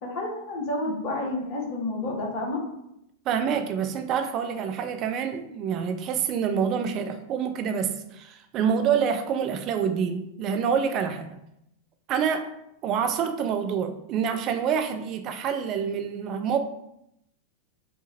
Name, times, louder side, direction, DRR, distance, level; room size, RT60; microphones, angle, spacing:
voice 1, 0.0-2.6, left 2 dB, 45° left, 0 dB, 1.1 m, -30 dB
voice 2, 3.3-11.4 12.1-12.5 12.8-16.6, right 7 dB, 35° right, 7 dB, 0.3 m, -27 dB
4.9 x 2.4 x 3.0 m, 0.80 s
figure-of-eight pair, 90°, 0 cm